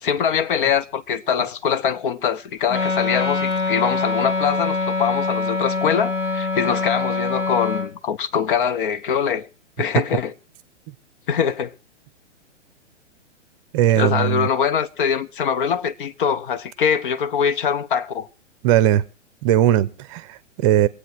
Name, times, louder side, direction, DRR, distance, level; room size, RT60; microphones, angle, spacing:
voice 1, 0.0-9.5 9.8-10.3 11.3-11.7 14.0-18.3, left 7 dB, 45° left, 1.1 m, -23 dB
Wind instrument woodwind instrument, 2.7-7.9, left 3 dB, 75° left, 4.4 m, -24 dB
voice 2, 13.7-14.5 18.6-19.0 19.4-20.9, right 12 dB, 25° right, 0.8 m, -18 dB
23.5 x 8.7 x 4.8 m
figure-of-eight pair, 120°, 36 cm